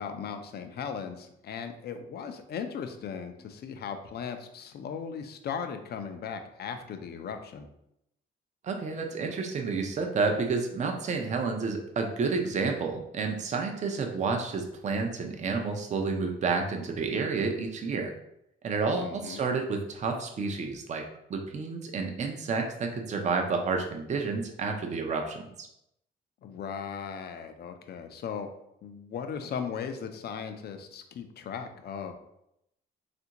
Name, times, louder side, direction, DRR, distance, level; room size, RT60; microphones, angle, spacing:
voice 1, 0.0-7.7 19.0-19.4 26.4-28.5 28.8-32.1, left 7 dB, 55° left, 7 dB, 0.4 m, -37 dB
voice 2, 8.6-18.1 18.6-25.4, right 4 dB, 35° right, 3 dB, 0.5 m, -30 dB
3.4 x 2.5 x 2.8 m, 0.80 s
cardioid pair, 90°, 20 cm